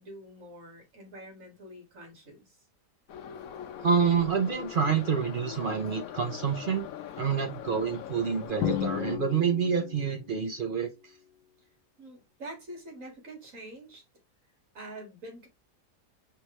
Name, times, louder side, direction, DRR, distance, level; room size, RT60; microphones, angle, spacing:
voice 1, 0.0-2.6 12.0-14.0 14.7-15.5, right 1 dB, 50° right, 2.3 m, -45 dB
Subway metro underground, 3.1-9.2, left 10 dB, 65° left, 0.9 m, -41 dB
voice 2, 3.8-6.9 7.2-11.1, right 6 dB, 70° right, 0.5 m, -28 dB
Drum, 8.6-10.3, left 10 dB, 90° left, 1.3 m, -32 dB
4.6 x 3.4 x 3.0 m
omnidirectional pair, 1.8 m